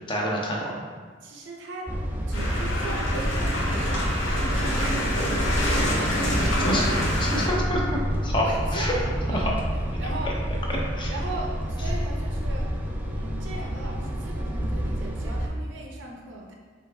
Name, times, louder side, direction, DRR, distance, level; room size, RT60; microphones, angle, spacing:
voice 1, 0.1-0.7 6.7-6.9 7.2-8.5 8.7-8.9 9.3-9.5 10.7-11.1, left 1 dB, 25° left, -2 dB, 0.6 m, -27 dB
voice 2, 1.2-1.9 2.3-4.1 4.4-5.6 6.5-7.0 7.6-7.7 8.3-9.6 10.0-10.4 11.1-12.7 13.2-16.5, right 2 dB, 70° right, 0 dB, 0.6 m, -38 dB
sound 1, 1.9-15.5, equal, 10° right, 0.3 m, -28 dB
sound 2, 2.3-7.5, equal, 85° left, 0.9 m, -26 dB
5.2 x 3.4 x 2.3 m, 1.5 s
head